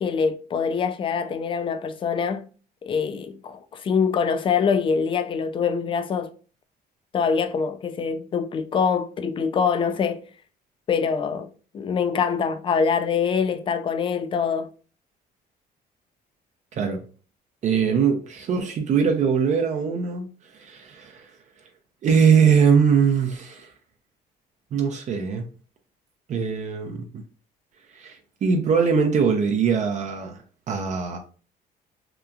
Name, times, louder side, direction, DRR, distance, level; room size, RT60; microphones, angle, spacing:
voice 1, 0.0-2.5 2.8-6.3 7.1-10.2 10.9-11.5 11.7-14.7, left 6 dB, 30° left, 0.3 m, -24 dB
voice 2, 17.6-21.3 22.0-23.7 24.7-25.5 26.3-27.1 27.9-30.4 30.7-31.2, right 6 dB, 45° right, 0.5 m, -21 dB
2.9 x 2.3 x 2.4 m
cardioid pair, 110°, 17 cm